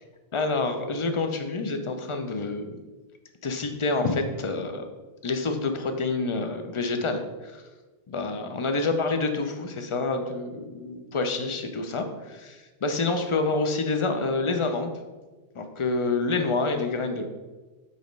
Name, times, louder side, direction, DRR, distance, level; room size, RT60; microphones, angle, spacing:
voice 1, 0.3-2.8 3.4-4.8 5.2-7.6 8.1-14.9 15.5-17.3, left 3 dB, 40° left, 6 dB, 0.5 m, -27 dB
6.5 x 3.0 x 5.2 m, 1.2 s
omnidirectional pair, 1.0 m